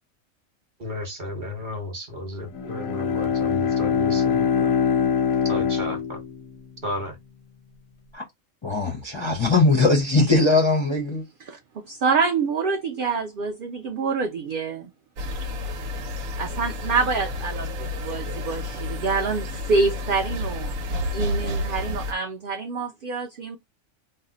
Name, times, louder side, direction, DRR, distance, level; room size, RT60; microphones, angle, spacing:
voice 1, 0.8-4.7 5.4-6.2 6.8-7.2, left 1 dB, 40° right, 1.0 m, -33 dB
Bowed string instrument, 2.5-6.9, left 7 dB, 85° left, 1.0 m, -23 dB
voice 2, 8.6-11.2, left 3 dB, 40° left, 0.4 m, -20 dB
voice 3, 11.5-14.9 16.4-20.7 21.1-23.6, right 4 dB, 65° right, 0.5 m, -26 dB
sound 1, 15.2-22.1, left 2 dB, 85° right, 1.1 m, -30 dB
2.7 x 2.1 x 3.7 m
omnidirectional pair, 1.4 m